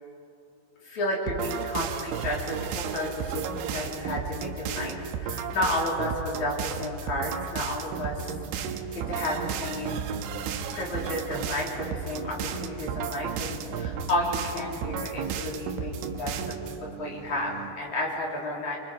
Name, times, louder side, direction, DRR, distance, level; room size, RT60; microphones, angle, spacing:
voice 1, 0.8-10.1 10.7-15.9 16.2-16.4 16.8-18.8, left 1 dB, 40° left, -3 dB, 4.6 m, -32 dB
sound 1, 1.3-16.8, right 7 dB, 75° right, 3.3 m, -33 dB
sound 2, 7.9-17.7, right 6 dB, 60° right, 4.1 m, -46 dB
27.0 x 26.5 x 5.1 m, 2.9 s
omnidirectional pair, 6.0 m